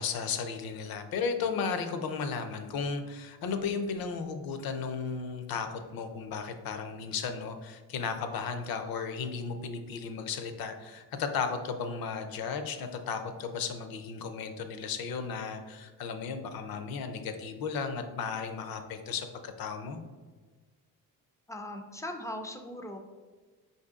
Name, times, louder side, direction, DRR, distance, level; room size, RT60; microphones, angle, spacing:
voice 1, 0.0-20.0, left 5 dB, 60° left, 8 dB, 0.6 m, -35 dB
voice 2, 21.5-23.0, left 1 dB, 10° left, 4 dB, 0.3 m, -39 dB
4.9 x 2.7 x 3.5 m, 1.4 s
cardioid pair, 110°, 41 cm